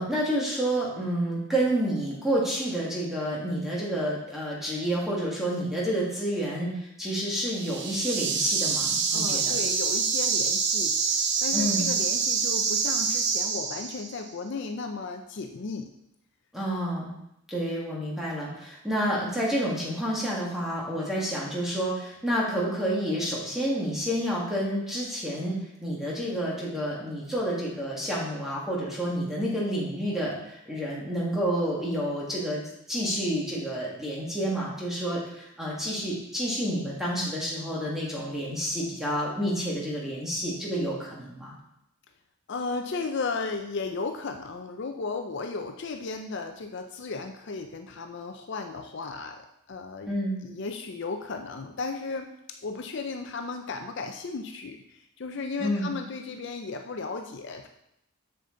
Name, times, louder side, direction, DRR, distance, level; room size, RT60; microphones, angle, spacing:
voice 1, 0.0-9.5 11.5-11.9 16.5-17.1 17.5-25.6 25.8-32.6 32.9-41.5 50.1-50.4 55.6-55.9, equal, ahead, -5 dB, 1.9 m, -29 dB
sound 1, 7.5-14.2, right 5 dB, 50° right, 0.8 m, -26 dB
voice 2, 9.1-15.9 42.5-49.4 49.7-50.1 50.4-52.3 52.6-57.7, left 4 dB, 55° left, 5 dB, 0.5 m, -35 dB
7.0 x 6.8 x 3.8 m, 0.81 s
head